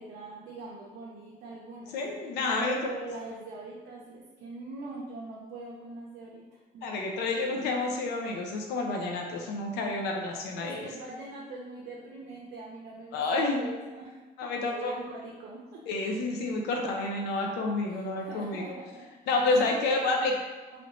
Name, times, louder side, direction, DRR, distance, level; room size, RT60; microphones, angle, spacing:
voice 1, 0.0-1.9 2.6-6.9 10.6-15.8 17.9-19.1 19.7-20.8, right 2 dB, 80° right, -4 dB, 0.6 m, -43 dB
voice 2, 1.9-2.8 6.8-10.8 13.1-13.7 14.4-14.9 15.9-18.6 19.3-20.3, left 3 dB, 85° left, 1 dB, 0.5 m, -29 dB
3.1 x 2.5 x 3.0 m, 1.2 s
cardioid pair, 110°, 17 cm